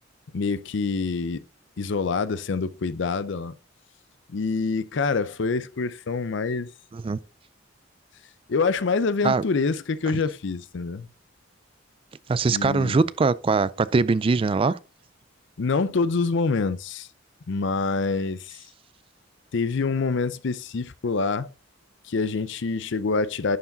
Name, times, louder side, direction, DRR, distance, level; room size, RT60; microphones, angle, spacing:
voice 1, 0.3-1.4 1.8-3.5 4.3-6.7 8.5-11.1 12.5-13.0 15.6-17.1 17.5-18.6 19.5-21.5 22.1-23.6, left 4 dB, 65° left, 0.5 m, -26 dB
voice 2, 12.3-14.8, right 4 dB, 25° right, 0.3 m, -22 dB
11.0 x 4.8 x 3.9 m
head